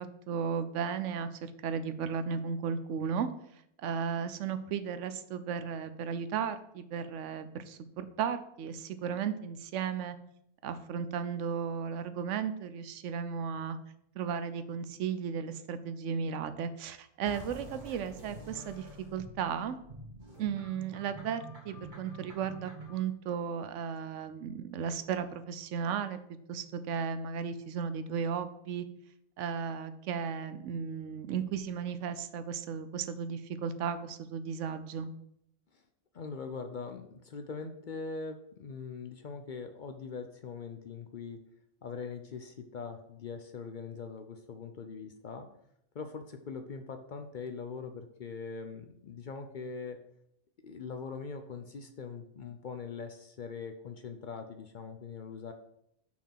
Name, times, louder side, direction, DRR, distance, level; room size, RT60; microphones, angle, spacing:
voice 1, 0.0-3.3 3.8-10.2 10.6-13.8 14.2-18.9 19.1-19.8 20.4-26.2 26.5-28.9 29.4-35.1, right 7 dB, 90° right, 11 dB, 0.9 m, -35 dB
sound 1, 17.2-23.0, right 2 dB, 40° right, 1.4 m, -47 dB
voice 2, 36.1-41.4 41.8-45.5 45.9-50.0 50.6-55.5, left 5 dB, 55° left, 6 dB, 0.6 m, -42 dB
5.9 x 4.4 x 5.7 m, 0.74 s
omnidirectional pair, 1.2 m